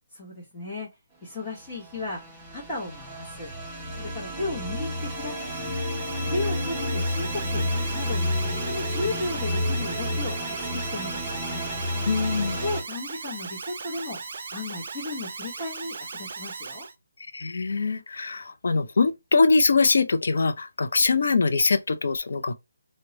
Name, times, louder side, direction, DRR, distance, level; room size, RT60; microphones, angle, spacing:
voice 1, 0.1-0.9 1.2-3.5 4.0-5.5 6.3-8.2 8.5-11.7 12.6-14.2 14.5-16.9, left 2 dB, 10° left, 1.1 m, -35 dB
sound 1, 1.8-12.8, left 1 dB, 5° right, 0.7 m, -30 dB
Alarm, 4.6-16.9, right 4 dB, 50° right, 0.5 m, -38 dB
voice 2, 12.1-12.6 17.3-22.6, left 4 dB, 55° left, 0.4 m, -23 dB
2.9 x 2.1 x 3.8 m
figure-of-eight pair, 145°, 0 cm